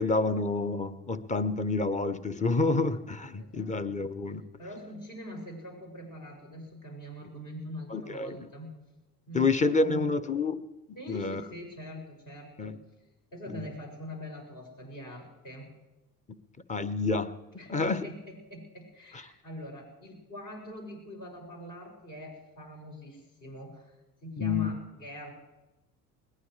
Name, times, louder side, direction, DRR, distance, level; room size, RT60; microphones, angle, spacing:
voice 1, 0.0-4.5 7.9-8.4 9.3-10.6 11.1-11.4 12.6-12.8 13.5-13.7 16.3-16.4 16.7-17.3 17.7-18.0 19.1-19.2 24.4-24.7, left 3 dB, 15° left, 13 dB, 1.0 m, -28 dB
voice 2, 3.4-3.8 4.6-8.7 9.3-10.1 10.9-12.8 13.3-15.7 17.6-25.3, equal, 45° left, -1 dB, 7.0 m, -43 dB
21.0 x 19.0 x 3.3 m, 1.0 s
hypercardioid pair, 70°, 47 cm